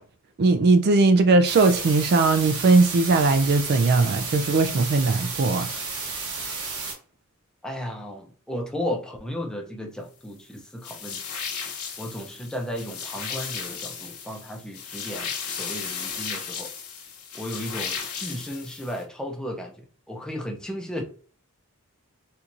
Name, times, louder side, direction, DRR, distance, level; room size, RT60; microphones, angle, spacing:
voice 1, 0.4-5.7, right 3 dB, 45° right, 0.3 m, -19 dB
sound 1, 1.4-6.9, right 4 dB, 70° right, 1.1 m, -32 dB
voice 2, 7.6-11.3 12.0-16.7 17.3-21.0, equal, 5° left, 0.6 m, -34 dB
sound 2, 10.8-19.0, left 6 dB, 70° left, 0.9 m, -35 dB
4.4 x 2.4 x 2.5 m
head